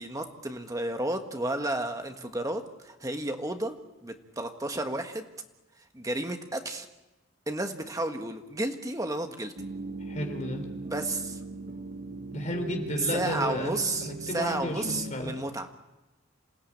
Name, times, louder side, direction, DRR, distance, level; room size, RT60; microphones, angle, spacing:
voice 1, 0.0-5.3 5.9-6.9 7.5-9.5 10.8-11.4 13.1-15.7, right 2 dB, 15° right, 5 dB, 1.5 m, -32 dB
sound 1, 9.6-15.1, right 3 dB, 45° right, 1.5 m, -39 dB
voice 2, 10.1-10.6 12.3-15.3, left 1 dB, 35° left, 4 dB, 4.1 m, -33 dB
27.5 x 17.0 x 8.8 m, 1.0 s
head